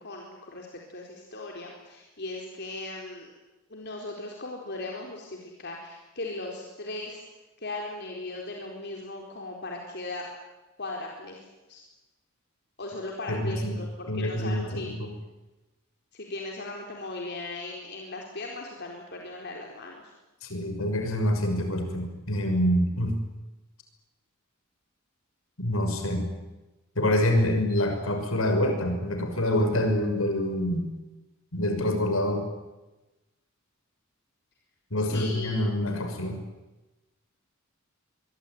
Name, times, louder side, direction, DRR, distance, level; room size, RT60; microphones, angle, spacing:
voice 1, 0.0-3.3 3.7-7.2 7.6-10.3 10.8-11.4 11.7-11.8 12.8-14.9 16.1-20.1 35.0-35.8, left 2 dB, 55° left, 0 dB, 4.3 m, -38 dB
voice 2, 13.3-13.8 14.1-15.1 20.4-23.2 25.6-26.3 27.0-30.9 31.5-32.5 34.9-36.4, left 1 dB, 90° left, 5 dB, 6.1 m, -26 dB
24.5 x 23.5 x 9.5 m, 1.1 s
head